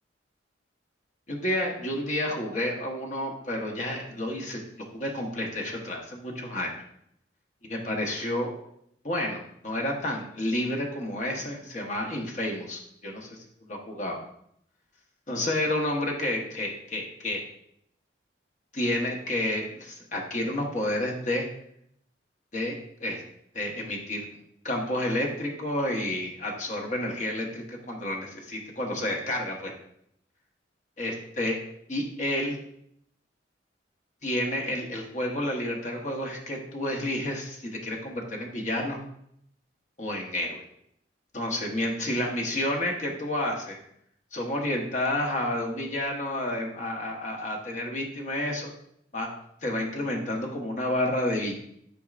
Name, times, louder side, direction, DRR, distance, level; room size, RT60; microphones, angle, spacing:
voice 1, 1.3-6.7 7.7-8.7 9.0-13.3 13.7-14.2 15.3-17.4 18.7-21.5 22.5-23.2 23.5-24.3 24.6-29.7 31.0-31.6 31.9-32.6 34.2-39.0 40.0-40.6 41.3-43.8 44.3-48.7 49.1-49.3 49.6-51.5, left 1 dB, 40° left, 0 dB, 1.1 m, -30 dB
10.5 x 4.6 x 2.5 m, 0.72 s
head